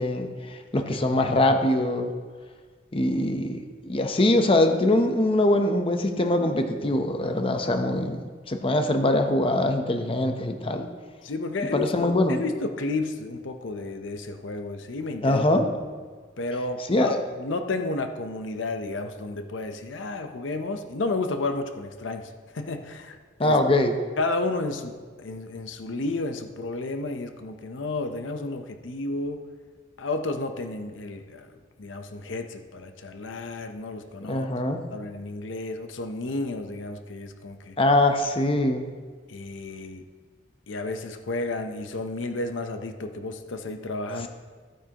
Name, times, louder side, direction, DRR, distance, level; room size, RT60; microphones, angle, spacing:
voice 1, 0.0-2.1 2.9-3.6 3.9-8.2 8.5-10.8 11.7-12.4 15.2-15.7 16.9-17.2 23.4-24.0 34.3-34.8 37.8-38.8 44.2-44.3, left 1 dB, 30° left, 5 dB, 0.7 m, -23 dB
voice 2, 11.2-15.4 16.4-23.2 23.4-23.6 24.2-29.4 30.0-31.5 31.8-34.5 34.9-37.7 39.3-40.0 40.7-44.3, left 2 dB, 80° left, 7 dB, 0.7 m, -32 dB
14.5 x 9.0 x 2.9 m, 1.5 s
head